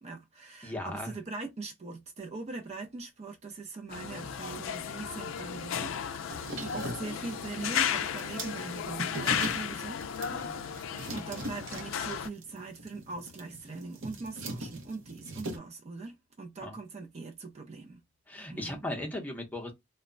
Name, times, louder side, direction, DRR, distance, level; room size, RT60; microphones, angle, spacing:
voice 1, 0.0-10.0 10.5-18.0 18.5-18.8, right 3 dB, 35° right, 0.4 m, -41 dB
voice 2, 0.6-1.1 10.3-10.5 16.6-16.8 18.3-19.7, left 1 dB, 10° left, 0.7 m, -37 dB
sound 1, 3.9-12.3, left 8 dB, 75° left, 0.3 m, -34 dB
sound 2, 6.3-15.6, right 2 dB, 75° right, 0.7 m, -41 dB
2.1 x 2.1 x 3.6 m
head